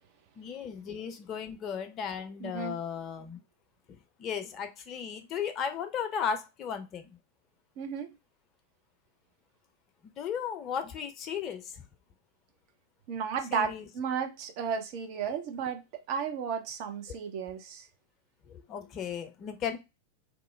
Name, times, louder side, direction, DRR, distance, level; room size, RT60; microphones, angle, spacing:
voice 1, 0.4-3.4 3.9-7.1 10.0-11.8 13.5-13.9 17.1-17.2 18.5-19.8, left 7 dB, 30° left, 0.5 m, -35 dB
voice 2, 2.4-2.8 7.8-8.1 13.1-15.8 16.1-17.9, right 7 dB, 45° right, 0.6 m, -33 dB
3.1 x 2.0 x 3.2 m
figure-of-eight pair, 90°, 0 cm